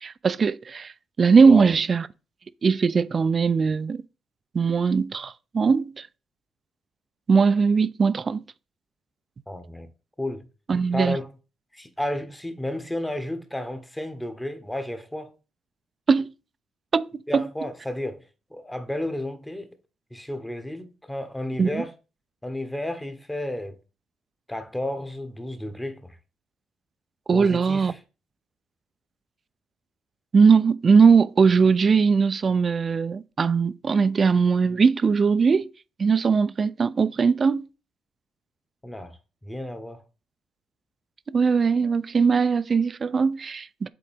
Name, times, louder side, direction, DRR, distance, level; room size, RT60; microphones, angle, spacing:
voice 1, 0.0-0.9 1.2-2.1 2.6-4.0 4.5-6.1 7.3-8.4 10.7-11.2 16.1-16.3 16.9-17.1 17.3-17.4 21.6-21.8 27.3-27.9 30.3-35.7 36.0-37.7 41.3-43.9, right 5 dB, 40° right, 0.3 m, -20 dB
voice 2, 9.5-9.9 10.2-10.5 10.9-11.3 11.7-15.3 17.3-18.2 18.5-19.7 20.1-21.9 22.4-23.8 24.5-26.2 27.3-28.0 38.8-40.0, left 1 dB, 10° left, 1.0 m, -32 dB
7.8 x 3.9 x 3.5 m
cardioid pair, 90°, 0 cm